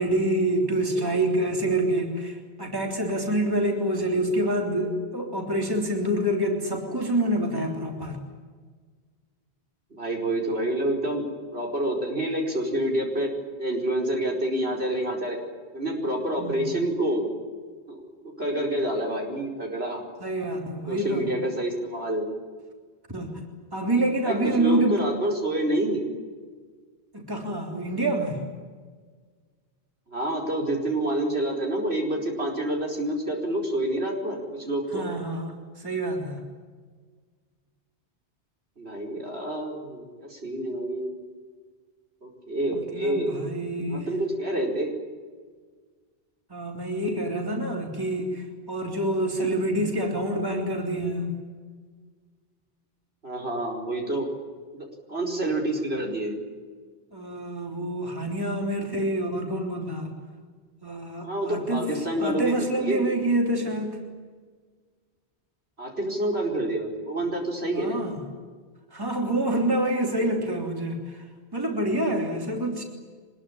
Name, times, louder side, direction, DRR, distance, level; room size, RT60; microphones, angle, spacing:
voice 1, 0.0-8.2 16.4-16.6 20.2-21.3 23.1-25.0 27.1-28.4 34.9-36.4 42.7-44.1 46.5-51.4 57.1-60.1 60.8-61.9 62.2-64.0 67.7-68.2 68.9-71.2 71.5-72.8, right 1 dB, 20° right, 1 dB, 3.4 m, -27 dB
voice 2, 9.9-11.3 11.5-13.3 13.6-15.4 15.7-17.3 17.9-20.0 20.9-22.3 24.2-26.0 30.1-35.1 38.8-41.1 42.2-43.4 43.9-44.9 53.2-54.3 54.7-56.4 61.2-63.1 65.8-68.0, right 1 dB, 65° right, 0 dB, 5.1 m, -28 dB
24.5 x 21.0 x 10.0 m, 1.6 s
omnidirectional pair, 1.1 m